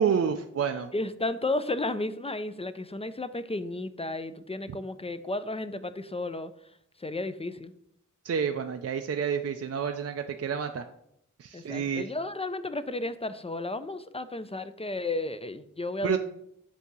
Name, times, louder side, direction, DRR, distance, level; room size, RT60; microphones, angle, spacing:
voice 1, 0.0-0.9 8.2-10.8 11.4-12.1 16.0-16.2, right 7 dB, 50° right, 6 dB, 0.4 m, -29 dB
voice 2, 0.9-6.5 7.0-7.7 11.5-16.2, left 2 dB, 20° left, 12 dB, 0.4 m, -33 dB
8.2 x 2.8 x 6.1 m, 0.74 s
wide cardioid pair, 80°, 31 cm